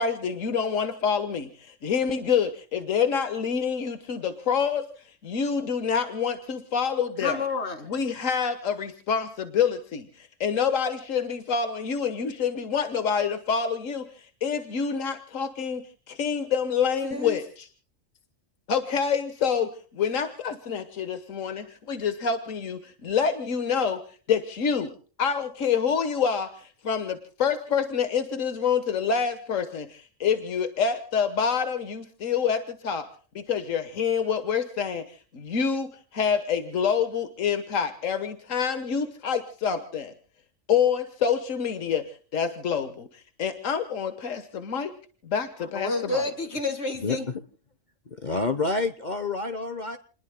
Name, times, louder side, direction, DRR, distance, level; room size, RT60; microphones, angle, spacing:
voice 1, 0.0-4.9 5.2-7.5 7.8-17.7 18.7-24.0 24.3-24.9 25.2-33.1 33.3-40.1 40.7-44.9 45.2-46.3, left 6 dB, 85° left, 1.6 m, -27 dB
voice 2, 7.2-7.9 17.0-17.4 45.6-47.3, left 3 dB, 60° left, 2.4 m, -30 dB
voice 3, 48.1-50.0, left 3 dB, 40° left, 1.0 m, -28 dB
29.5 x 21.0 x 2.2 m
omnidirectional pair, 1.3 m